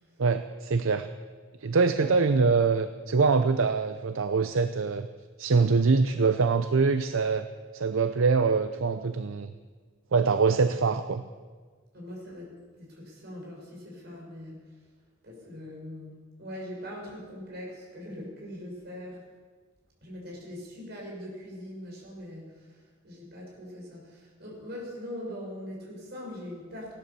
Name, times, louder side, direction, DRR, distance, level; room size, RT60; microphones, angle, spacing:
voice 1, 0.2-1.1 1.6-5.1 5.4-7.5 7.7-9.5 10.1-11.2, right 4 dB, 75° right, 10 dB, 0.6 m, -24 dB
voice 2, 2.0-2.5 2.7-2.8 11.9-12.5 12.7-14.5 15.2-16.1 16.4-19.2 20.0-22.7 23.0-26.9, left 1 dB, 50° right, -3 dB, 5.8 m, -41 dB
16.5 x 12.0 x 6.9 m, 1.5 s
head